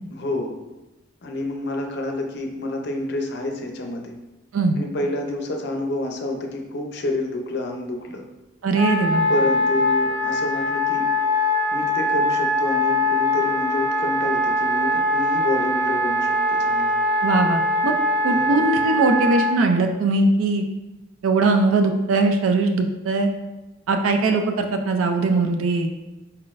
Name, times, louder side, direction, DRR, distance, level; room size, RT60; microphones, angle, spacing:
voice 1, 0.1-0.5 1.2-4.1 4.8-8.2 9.3-11.1 11.7-17.0 18.3-18.5, left 2 dB, 55° left, 3 dB, 0.5 m, -28 dB
voice 2, 8.6-9.3 17.2-17.9 18.2-20.6 21.2-23.3 23.9-25.9, right 3 dB, 85° right, 5 dB, 0.4 m, -20 dB
Wind instrument woodwind instrument, 8.7-19.6, left 1 dB, 35° right, 1.0 m, -22 dB
4.3 x 3.8 x 2.5 m, 1.1 s
head